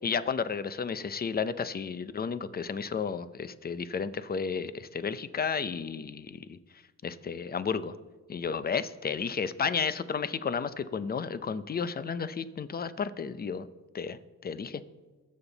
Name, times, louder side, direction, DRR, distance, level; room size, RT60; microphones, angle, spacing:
voice 1, 0.0-6.6 7.0-7.9 8.3-13.7 13.9-14.8, left 6 dB, 30° left, 13 dB, 0.7 m, -32 dB
21.0 x 7.3 x 4.1 m, 1.3 s
cardioid pair, 90°, 30 cm